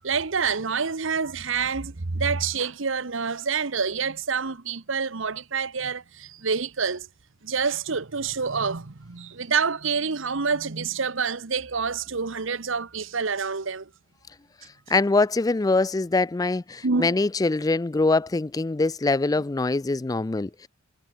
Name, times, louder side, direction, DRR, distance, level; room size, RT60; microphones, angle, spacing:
voice 1, 0.0-7.1 7.4-13.9 16.8-17.1, right 5 dB, 65° right, 1.1 m, -27 dB
voice 2, 14.9-20.7, left 3 dB, 15° left, 0.3 m, -23 dB
head